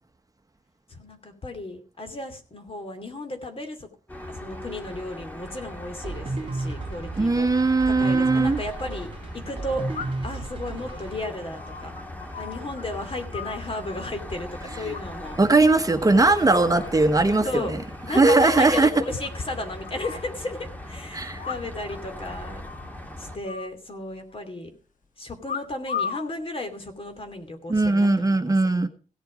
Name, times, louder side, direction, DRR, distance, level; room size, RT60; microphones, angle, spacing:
voice 1, 0.9-3.9 4.3-9.1 9.3-11.9 12.4-15.4 16.2-16.7 17.4-17.7 18.1-22.7 23.2-24.7 25.2-28.9, left 1 dB, 45° left, 6 dB, 2.7 m, -34 dB
sound 1, 4.1-23.4, left 1 dB, 10° left, 2.1 m, -39 dB
sound 2, 6.0-11.2, right 2 dB, 40° right, 2.8 m, -33 dB
voice 2, 7.2-8.6 15.4-17.8 18.1-18.9 21.1-21.4 27.7-28.9, right 3 dB, 25° right, 8 dB, 1.2 m, -19 dB
sound 3, 8.1-8.2 9.9-10.4 10.8-12.8 13.1-14.1 14.9-15.4 15.7-16.1 16.5-17.1 17.4-17.5 17.7-17.8 18.1-18.2 18.5-18.6 19.2-20.3 21.4-22.0 22.2-22.3 22.6-23.0 23.5-24.4 25.4-26.3 27.1-27.4, left 7 dB, 75° left, 1.0 m, -36 dB
16.5 x 8.0 x 5.1 m, 0.37 s
wide cardioid pair, 90°, 14 cm